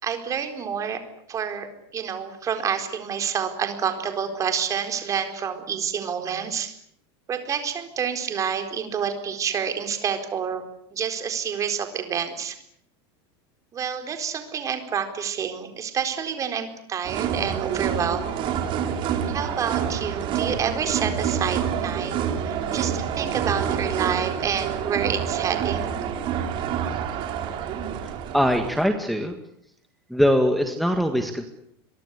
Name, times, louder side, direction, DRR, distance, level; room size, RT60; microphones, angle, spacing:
voice 1, 0.0-1.0 1.3-6.7 7.3-10.6 10.9-12.6 13.7-18.4 19.3-26.0, right 7 dB, 25° right, 7 dB, 4.2 m, -28 dB
sound 1, 17.0-28.9, right 8 dB, 40° right, 4.6 m, -27 dB
voice 2, 28.3-29.4 30.1-31.5, equal, ahead, 4 dB, 1.9 m, -22 dB
27.0 x 23.0 x 8.3 m, 0.69 s
supercardioid pair, 150°, 13 cm